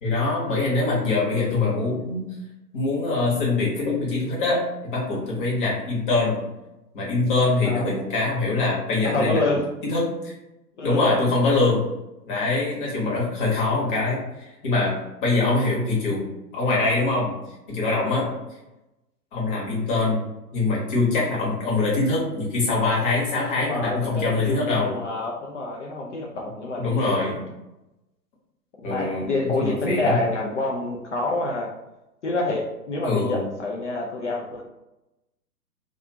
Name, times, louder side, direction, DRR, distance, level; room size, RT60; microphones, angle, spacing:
voice 1, 0.0-2.3 2.7-6.4 6.9-9.5 9.8-10.3 10.8-11.8 12.3-14.9 15.2-16.2 16.5-17.4 17.7-18.3 19.3-20.2 20.5-25.0 26.8-27.4 28.8-30.2 33.0-33.5, left 3 dB, 30° left, -4 dB, 1.0 m, -23 dB
voice 2, 5.2-5.5 7.4-7.9 9.0-9.6 10.8-11.1 17.9-18.4 23.6-27.4 28.9-31.7 32.2-34.6, left 2 dB, 50° left, -1 dB, 0.4 m, -27 dB
2.5 x 2.3 x 2.7 m, 0.95 s
figure-of-eight pair, 125°, 49 cm